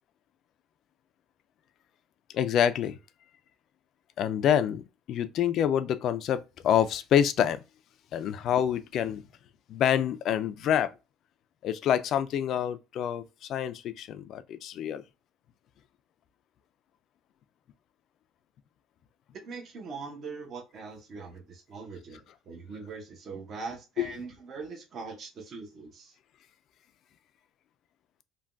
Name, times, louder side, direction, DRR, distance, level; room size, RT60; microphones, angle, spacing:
voice 1, 2.3-3.0 4.2-4.8 5.1-7.6 8.1-9.2 9.7-10.9 11.6-15.0 24.0-24.1, left 9 dB, 50° left, 0.3 m, -27 dB
voice 2, 19.4-26.1, right 4 dB, 40° right, 0.8 m, -41 dB
3.4 x 2.2 x 2.4 m
cardioid pair, 145°, 0 cm